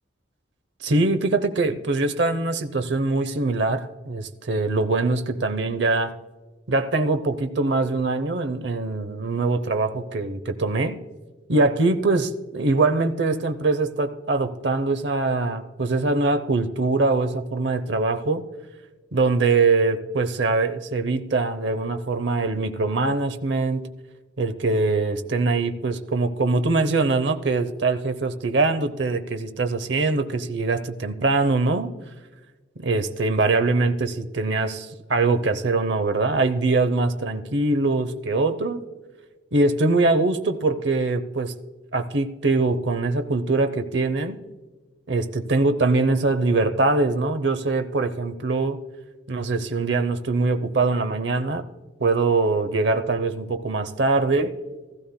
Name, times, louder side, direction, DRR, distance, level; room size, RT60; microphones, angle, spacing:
voice 1, 0.8-6.1 6.7-11.0 11.5-18.4 19.1-23.9 24.4-31.9 32.8-38.8 39.5-41.5 41.9-44.4 45.1-48.8 49.3-51.7 52.0-54.6, right 3 dB, 65° right, 9 dB, 0.7 m, -23 dB
16.0 x 14.0 x 2.2 m, 1.3 s
head